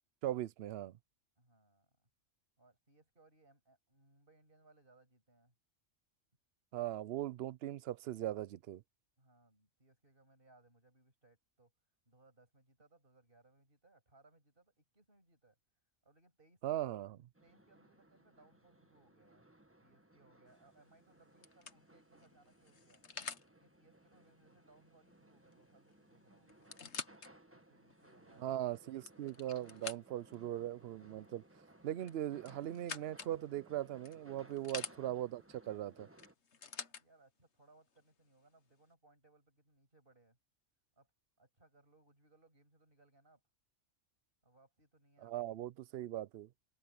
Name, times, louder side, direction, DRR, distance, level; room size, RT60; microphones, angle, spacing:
voice 1, 0.2-1.0 6.7-8.8 16.6-17.1 28.4-31.4 31.8-36.1 45.2-46.5, right 13 dB, 60° right, 0.7 m, -39 dB
voice 2, 1.4-2.1 2.6-5.6 9.2-11.7 12.1-15.6 16.0-17.0 17.4-19.4 19.8-23.0 23.5-26.8 27.5-28.9 34.4-34.7 37.0-40.4 40.9-41.1 41.4-43.4 44.4-45.6, right 2 dB, 45° right, 7.1 m, -68 dB
sound 1, 17.3-36.3, right 1 dB, 10° right, 1.3 m, -63 dB
sound 2, 20.5-20.8 21.4-23.5 25.5-25.6 25.9-26.0 26.5-27.3 27.9-28.0 28.8-30.4 32.0-33.4 34.0-35.0 36.2-37.0 38.0-38.1, left 6 dB, 65° left, 1.6 m, -47 dB
open air
omnidirectional pair, 1.3 m